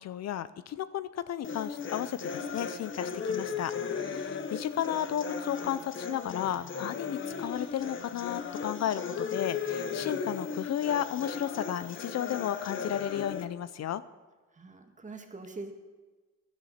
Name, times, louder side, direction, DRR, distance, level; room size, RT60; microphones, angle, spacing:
voice 1, 0.0-14.0, left 11 dB, 60° left, 15 dB, 0.6 m, -34 dB
sound 1, 1.4-13.5, left 5 dB, 40° left, 1.1 m, -36 dB
voice 2, 14.6-15.7, right 3 dB, 25° right, 4 dB, 1.9 m, -43 dB
16.0 x 11.5 x 4.3 m, 1.3 s
cardioid pair, 90°, 30 cm